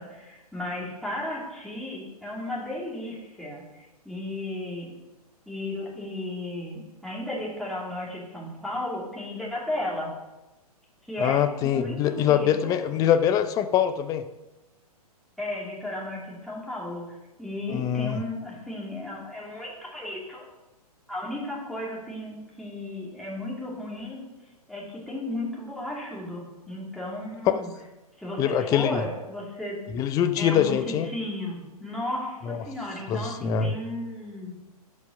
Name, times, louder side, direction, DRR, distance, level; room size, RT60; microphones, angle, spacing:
voice 1, 0.0-4.9 5.5-10.1 11.1-12.7 15.4-20.5 21.1-24.3 24.7-27.7 28.2-29.8 30.4-34.6, left 1 dB, ahead, -5 dB, 2.5 m, -34 dB
voice 2, 11.2-14.3 17.7-18.2 27.5-27.6 28.4-29.0 29.9-31.1 32.5-32.6 33.1-33.7, left 9 dB, 20° left, 10 dB, 0.5 m, -24 dB
11.5 x 5.4 x 5.2 m, 1.0 s
figure-of-eight pair, 120°, 20 cm